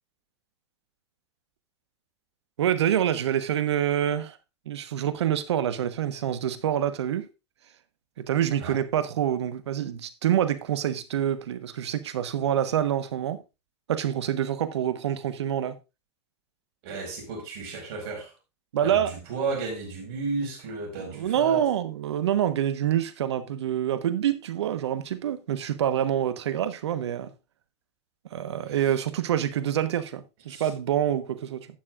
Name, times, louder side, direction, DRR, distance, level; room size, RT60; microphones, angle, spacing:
voice 1, 2.6-4.4 4.7-7.3 8.2-13.4 13.9-15.7 18.7-19.1 21.0-27.3 28.3-31.7, right 10 dB, 80° right, 1.2 m, -26 dB
voice 2, 16.8-18.3 18.8-21.6 28.7-28.8 30.5-30.7, right 4 dB, 60° right, 5.4 m, -33 dB
12.0 x 9.7 x 2.5 m
hypercardioid pair, 105°, 14 cm